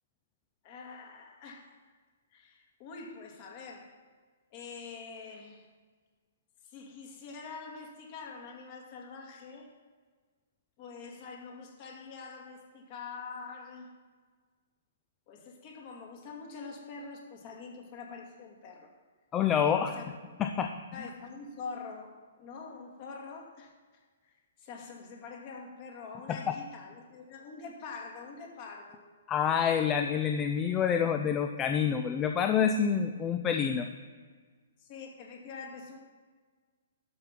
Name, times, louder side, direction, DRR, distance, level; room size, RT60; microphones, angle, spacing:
voice 1, 0.6-1.7 2.3-3.9 4.5-5.7 6.6-9.7 10.8-13.9 15.3-18.9 19.6-20.4 20.9-23.7 24.2-24.3 24.6-29.0 34.8-36.0, left 4 dB, 40° left, 1 dB, 2.4 m, -45 dB
voice 2, 19.3-20.0 20.4-20.7 26.3-26.4 29.3-33.9, left 7 dB, 20° left, 6 dB, 0.6 m, -27 dB
12.0 x 5.7 x 6.1 m, 1.5 s
figure-of-eight pair, 125°, 0 cm